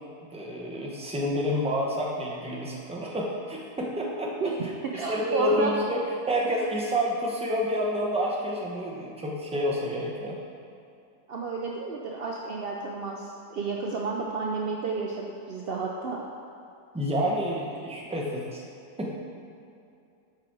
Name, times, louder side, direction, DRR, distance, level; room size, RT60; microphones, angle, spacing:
voice 1, 0.2-4.5 4.9-10.4 16.9-18.6 19.0-19.1, equal, 5° right, -3 dB, 0.6 m, -29 dB
voice 2, 4.8-5.7 11.3-16.2, right 4 dB, 80° right, -2 dB, 0.5 m, -31 dB
7.5 x 4.9 x 6.1 m, 2.6 s
omnidirectional pair, 1.8 m